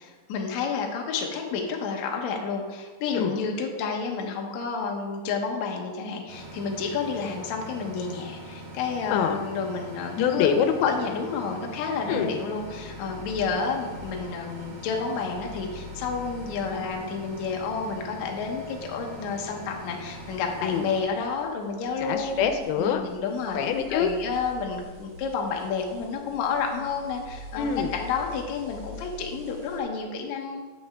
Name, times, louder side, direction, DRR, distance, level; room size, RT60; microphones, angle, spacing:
voice 1, 0.0-10.5 10.8-22.3 22.8-23.6 23.9-30.6, left 5 dB, 70° left, 1 dB, 1.9 m, -30 dB
sound 1, 6.3-21.0, right 1 dB, 90° right, 3.9 m, -42 dB
voice 2, 9.1-9.4 10.2-10.9 12.1-12.4 20.6-20.9 22.0-23.0 23.5-24.1 27.6-27.9, left 7 dB, 90° left, 7 dB, 2.6 m, -25 dB
sound 2, 12.5-29.8, left 1 dB, 45° right, 2.3 m, -46 dB
8.5 x 7.8 x 3.4 m, 1.3 s
omnidirectional pair, 4.3 m